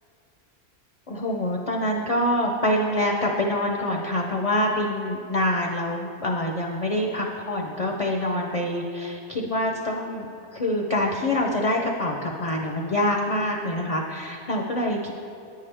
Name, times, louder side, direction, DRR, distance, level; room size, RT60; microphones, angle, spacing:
voice 1, 1.1-10.3 10.5-15.1, left 1 dB, 60° left, 1 dB, 0.3 m, -25 dB
9.1 x 5.6 x 3.3 m, 2.7 s
omnidirectional pair, 1.3 m